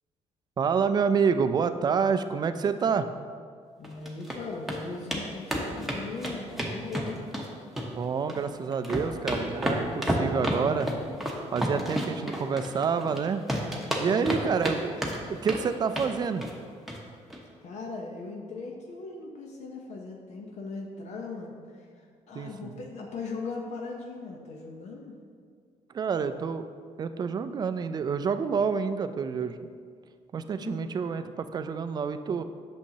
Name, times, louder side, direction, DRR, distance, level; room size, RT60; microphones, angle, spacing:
voice 1, 0.6-3.1 7.9-10.9 11.5-13.4 14.0-16.5 22.4-22.8 25.9-26.6 27.0-29.5 30.3-32.4, right 6 dB, 35° right, 11 dB, 0.3 m, -28 dB
voice 2, 3.8-7.2 14.0-14.9 17.6-21.9 22.3-25.2 30.6-31.0, left 4 dB, 65° left, 0 dB, 0.8 m, -39 dB
sound 1, 3.8-4.4 4.7-4.8 5.1-5.2 5.5-7.5 7.8-8.4 8.7-13.2 13.5-14.8 15.0-15.6 15.9-16.1 16.4-16.6 16.9-17.0 17.3-17.4, equal, ahead, 0.9 m, -30 dB
8.4 x 6.3 x 2.8 m, 2.1 s
cardioid pair, 125°, 12 cm